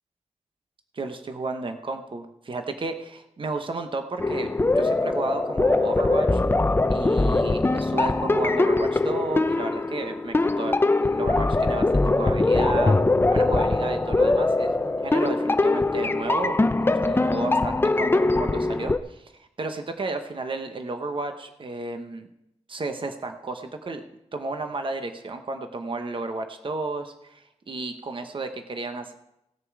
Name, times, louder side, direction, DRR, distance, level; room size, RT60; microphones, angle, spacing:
voice 1, 0.9-6.4 6.9-13.0 13.3-22.3 22.7-24.0 24.3-29.1, right 3 dB, 45° right, 6 dB, 0.9 m, -33 dB
sound 1, 4.2-19.0, left 2 dB, 20° left, 0.5 m, -22 dB
18.5 x 6.7 x 4.7 m, 0.85 s
wide cardioid pair, 125°, 12 cm